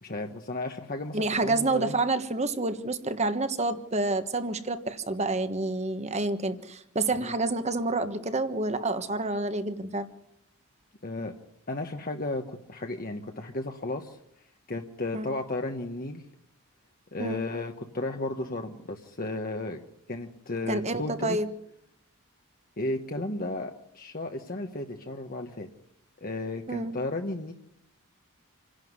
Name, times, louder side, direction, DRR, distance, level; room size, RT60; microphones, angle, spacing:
voice 1, 0.0-1.9 7.2-7.3 11.0-11.3 11.7-14.2 14.7-16.2 17.1-19.8 20.1-21.4 22.8-25.7 26.2-27.5, left 2 dB, 40° left, 3 dB, 1.3 m, -34 dB
voice 2, 1.1-10.1 15.1-15.3 17.2-17.4 20.7-21.5 26.7-26.9, right 2 dB, 30° right, 10 dB, 1.4 m, -28 dB
27.5 x 11.5 x 9.7 m, 0.76 s
head